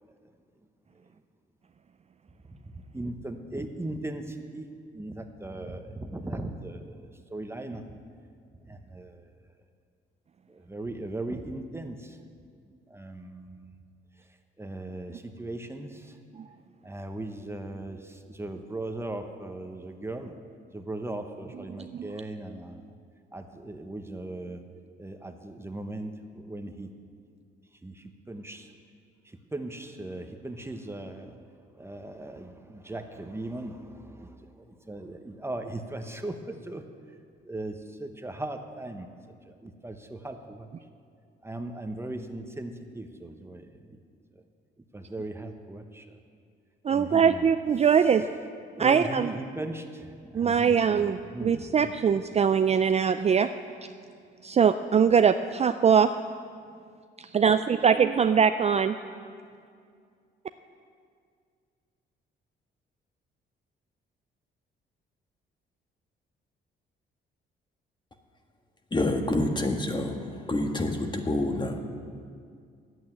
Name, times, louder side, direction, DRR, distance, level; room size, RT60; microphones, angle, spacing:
voice 1, 2.5-4.7 4.9-8.0 8.6-9.3 10.5-12.2 12.9-13.7 14.6-16.2 16.8-20.3 20.7-22.9 23.3-24.6 25.0-26.9 27.8-28.7 29.2-31.4 31.7-36.8 37.4-39.1 39.5-40.7 41.4-44.0 44.3-44.4 44.9-46.1 46.9-47.5 47.8-48.2 48.8-52.0, right 2 dB, 10° right, 6 dB, 1.0 m, -38 dB
voice 2, 46.8-48.2 48.8-49.3 50.3-53.5 54.4-56.1 57.3-58.9, right 7 dB, 35° right, 9 dB, 0.4 m, -22 dB
voice 3, 68.9-71.8, left 2 dB, 20° left, 4 dB, 1.5 m, -27 dB
11.0 x 8.6 x 9.3 m, 2.2 s
cardioid pair, 90°, 20 cm